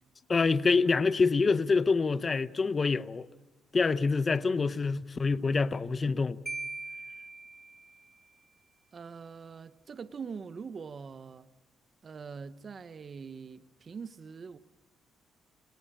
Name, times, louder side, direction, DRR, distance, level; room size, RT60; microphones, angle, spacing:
voice 1, 0.3-3.3 3.7-6.4, left 4 dB, 35° left, 0.9 m, -26 dB
Marimba xylophone, 6.5-8.2, right 2 dB, 15° right, 2.2 m, -41 dB
voice 2, 8.9-11.5 12.0-14.6, right 5 dB, 45° right, 1.0 m, -43 dB
29.0 x 18.5 x 8.7 m
cardioid pair, 90°, 0 cm